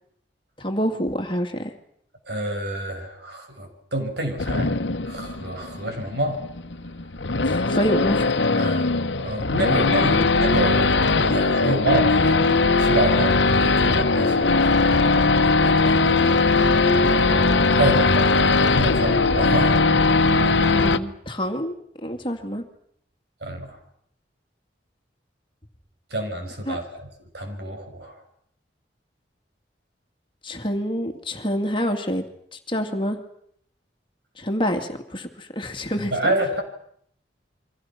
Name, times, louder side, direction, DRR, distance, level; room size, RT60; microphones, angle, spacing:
voice 1, 0.6-1.7 7.4-8.4 17.2-17.7 20.7-21.7 22.0-22.6 26.7-26.8 30.4-32.3 32.5-33.2 34.4-36.4, equal, 30° left, 5 dB, 2.3 m, -27 dB
voice 2, 2.2-4.8 5.0-6.4 8.5-12.4 12.8-16.1 17.7-19.8 23.4-23.8 26.1-28.2 36.0-36.6, right 1 dB, 65° right, 4 dB, 5.8 m, -28 dB
Race car auto racing / Idling / Accelerating revving vroom, 4.4-21.0, left 3 dB, 85° left, 1.2 m, -20 dB
29.0 x 24.5 x 5.9 m, 0.68 s
head